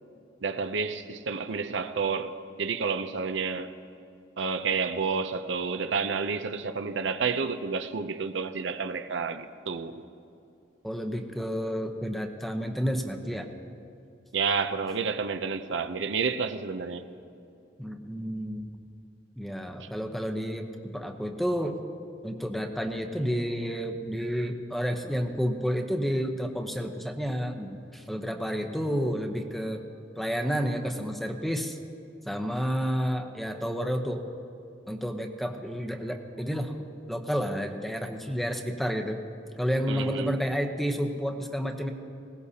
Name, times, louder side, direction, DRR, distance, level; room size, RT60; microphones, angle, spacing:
voice 1, 0.4-3.7 4.4-10.0 14.3-17.1 39.9-40.3, right 5 dB, 75° right, 0.6 m, -30 dB
voice 2, 10.8-13.5 17.8-18.7 19.4-21.8 22.2-29.8 30.2-31.8 32.2-34.2 34.9-36.8 37.1-39.2 39.6-41.9, equal, ahead, 0.8 m, -30 dB
20.5 x 17.5 x 2.8 m
head